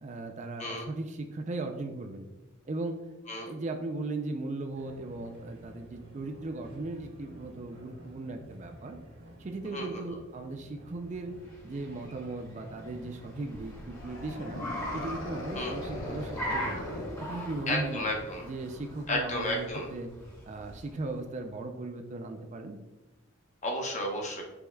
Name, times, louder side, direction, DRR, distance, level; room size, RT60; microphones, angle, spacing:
voice 1, 0.0-2.3 2.7-3.0 3.5-9.0 9.4-11.4 11.6-14.6 14.9-16.9 17.2-18.1 18.4-20.1 20.4-22.8, right 2 dB, 35° right, 5 dB, 0.4 m, -37 dB
sound 1, 4.7-16.4, equal, 60° right, 1.6 m, -52 dB
voice 2, 9.7-10.1 15.5-15.7 17.7-18.4 19.1-19.9 23.6-24.4, left 1 dB, 35° left, 1 dB, 0.8 m, -32 dB
Car, 11.0-21.3, equal, 15° left, 1.3 m, -41 dB
sound 2, 14.0-17.8, left 1 dB, 85° left, 0.7 m, -39 dB
5.2 x 4.5 x 2.2 m, 1.1 s
head